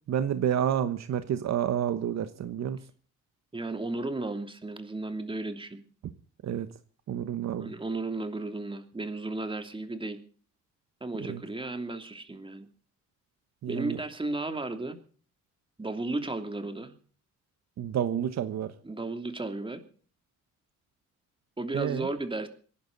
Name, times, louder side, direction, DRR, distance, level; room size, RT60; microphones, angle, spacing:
voice 1, 0.1-2.8 6.0-6.1 6.4-6.7 7.1-7.7 11.3-11.4 13.6-14.0 17.8-18.7 21.7-22.1, right 9 dB, 60° right, 11 dB, 1.2 m, -29 dB
voice 2, 3.5-5.8 7.6-10.2 11.0-12.7 13.7-15.0 15.8-16.9 18.8-19.8 21.6-22.5, right 2 dB, 15° right, 7 dB, 2.9 m, -34 dB
27.0 x 11.5 x 4.0 m, 0.42 s
cardioid pair, 90°, 30 cm